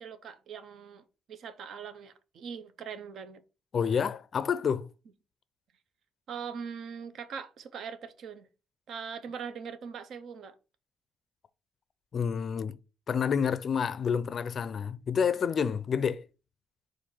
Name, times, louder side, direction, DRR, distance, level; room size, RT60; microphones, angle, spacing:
voice 1, 0.0-3.4 6.3-8.5 8.9-10.5, right 6 dB, 70° right, 0.6 m, -41 dB
voice 2, 3.7-4.9 12.1-12.8 13.1-16.2, left 7 dB, 50° left, 0.4 m, -29 dB
4.3 x 2.5 x 4.5 m
cardioid pair, 90°, 0 cm